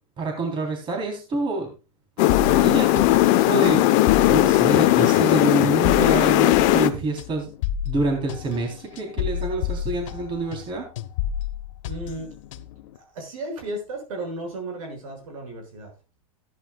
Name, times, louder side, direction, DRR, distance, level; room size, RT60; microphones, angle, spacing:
voice 1, 0.2-1.7 2.5-7.5 7.8-10.9, right 3 dB, 30° right, 2 dB, 3.6 m, -27 dB
sound 1, 2.2-6.9, left 15 dB, 45° left, 0.9 m, -18 dB
sound 2, 2.3-10.7 11.0-12.9, left 10 dB, 65° left, 1.0 m, -31 dB
voice 2, 11.8-12.3 12.9-15.9, right 2 dB, 70° right, 4 dB, 6.1 m, -34 dB
15.0 x 11.0 x 2.4 m, 0.29 s
hypercardioid pair, 125°, 18 cm